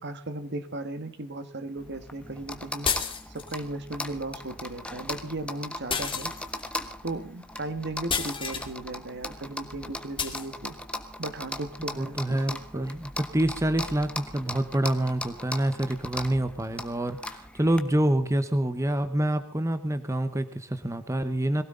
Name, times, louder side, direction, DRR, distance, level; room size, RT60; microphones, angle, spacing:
voice 1, 0.0-2.9 3.3-6.3 7.0-10.7 11.2-12.9, right 2 dB, 55° right, 10 dB, 1.7 m, -36 dB
sound 1, 1.8-17.8, left 1 dB, 5° left, 1.3 m, -39 dB
sound 2, 2.8-3.6 5.9-6.7 8.1-8.7 10.2-10.5, left 6 dB, 25° left, 2.4 m, -30 dB
voice 2, 12.0-21.6, right 1 dB, 15° right, 10 dB, 0.9 m, -27 dB
22.5 x 16.5 x 3.8 m, 0.42 s
head